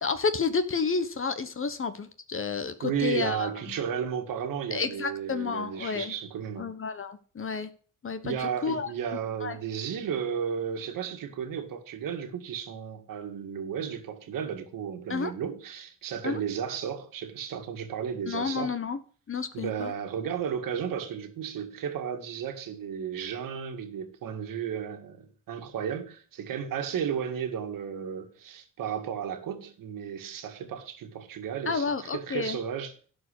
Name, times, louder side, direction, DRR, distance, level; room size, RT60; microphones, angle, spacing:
voice 1, 0.0-3.5 4.7-6.1 6.6-7.7 8.0-8.9 9.4-9.6 15.1-15.3 16.2-16.4 18.3-19.0 19.3-19.9 31.7-32.6, left 5 dB, 40° left, 1.2 m, -30 dB
voice 2, 2.8-6.7 8.2-18.8 19.5-33.0, right 8 dB, 75° right, 1.9 m, -34 dB
11.5 x 4.8 x 8.3 m
cardioid pair, 75°, 33 cm